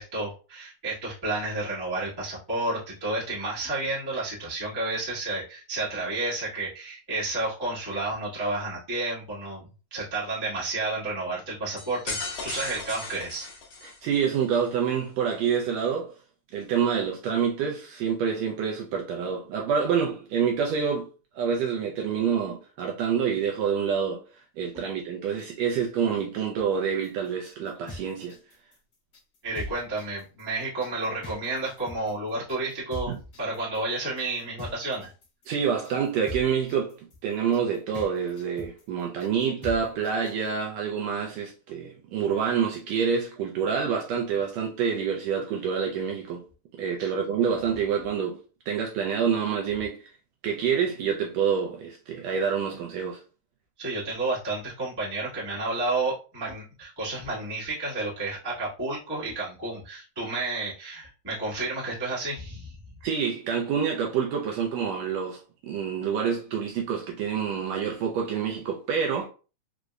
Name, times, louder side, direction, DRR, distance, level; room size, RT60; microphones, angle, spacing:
voice 1, 0.0-13.4 29.4-33.1 33.4-35.1 47.0-47.1 53.8-62.8, right 2 dB, 30° right, 0.4 m, -31 dB
sound 1, 11.8-14.3, left 3 dB, 80° left, 1.1 m, -36 dB
voice 2, 13.8-16.1 16.5-21.1 21.3-28.4 33.1-33.2 35.5-37.0 37.2-46.4 46.8-48.4 48.7-50.1 50.4-53.2 63.0-69.3, right 7 dB, 80° right, 1.5 m, -27 dB
sound 2, 27.0-40.5, left 1 dB, 65° left, 0.8 m, -42 dB
4.9 x 2.1 x 2.3 m
omnidirectional pair, 3.4 m